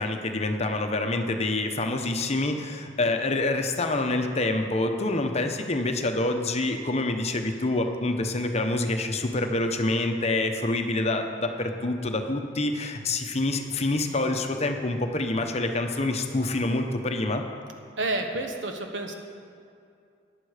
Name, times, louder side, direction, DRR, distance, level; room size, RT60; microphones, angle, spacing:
voice 1, 0.0-17.4, left 2 dB, 35° left, 5 dB, 0.9 m, -27 dB
voice 2, 18.0-19.1, right 2 dB, 80° right, 4 dB, 1.2 m, -29 dB
14.5 x 10.0 x 5.0 m, 2.4 s
head